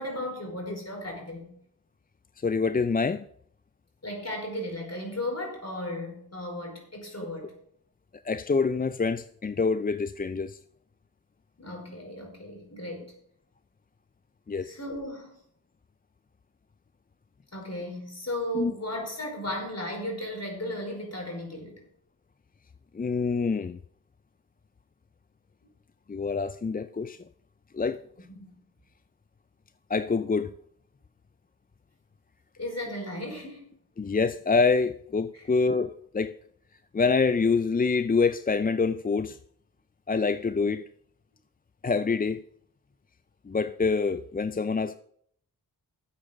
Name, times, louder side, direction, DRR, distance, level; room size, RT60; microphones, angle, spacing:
voice 1, 0.0-1.5 4.0-7.5 11.6-13.1 14.6-15.4 17.5-21.8 28.3-28.5 32.6-33.6 35.3-35.5, left 1 dB, 40° left, 5.1 m, -35 dB
voice 2, 2.4-3.3 8.2-10.6 14.5-14.7 18.5-18.7 22.9-23.8 26.1-27.2 27.7-28.0 29.9-30.5 34.0-36.3 36.9-39.4 40.1-40.8 41.8-42.4 43.4-45.0, left 4 dB, 25° left, 0.4 m, -26 dB
12.5 x 8.3 x 5.2 m
cardioid pair, 45°, 40 cm